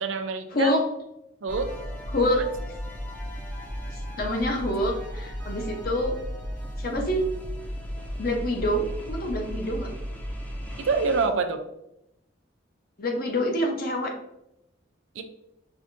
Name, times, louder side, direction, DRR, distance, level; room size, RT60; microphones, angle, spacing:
voice 1, 0.0-0.7 1.4-1.7 2.3-2.4 10.8-11.6 15.1-15.2, right 4 dB, 85° right, 6 dB, 0.5 m, -26 dB
voice 2, 0.5-0.8 2.1-2.4 4.2-6.2 6.8-7.2 8.2-9.9 13.0-14.1, left 1 dB, 50° left, 2 dB, 0.7 m, -26 dB
sound 1, 1.5-11.3, equal, 10° left, 0.5 m, -35 dB
4.6 x 2.6 x 2.5 m, 0.83 s
head